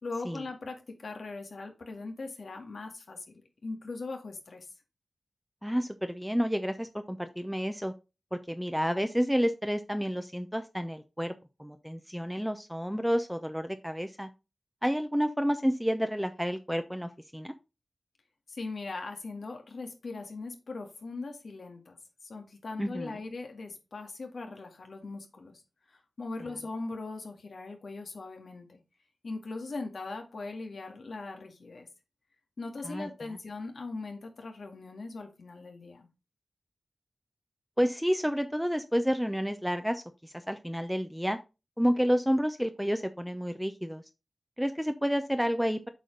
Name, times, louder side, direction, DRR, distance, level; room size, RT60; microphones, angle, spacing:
voice 1, 0.0-4.7 18.5-22.0 22.2-25.5 25.9-28.8 29.2-31.9 32.6-36.1, left 3 dB, 85° left, 2.0 m, -40 dB
voice 2, 5.6-7.9 8.3-11.3 11.6-14.3 14.8-17.5 22.8-23.1 32.8-33.1 37.8-41.4 41.8-44.0 44.6-45.9, equal, ahead, 0.7 m, -30 dB
8.0 x 5.0 x 3.9 m
wide cardioid pair, 65°, 0 cm